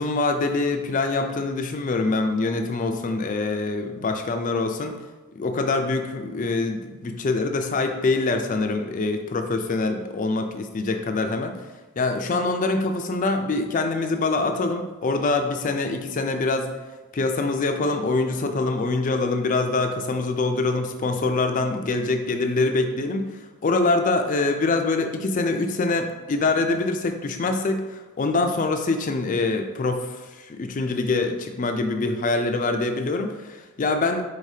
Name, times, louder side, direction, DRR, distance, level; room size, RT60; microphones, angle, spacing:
voice 1, 0.0-5.0 5.4-11.6 12.0-16.7 17.1-23.3 23.6-34.2, left 3 dB, 35° left, 6 dB, 0.4 m, -24 dB
4.8 x 4.0 x 2.8 m, 1.2 s
head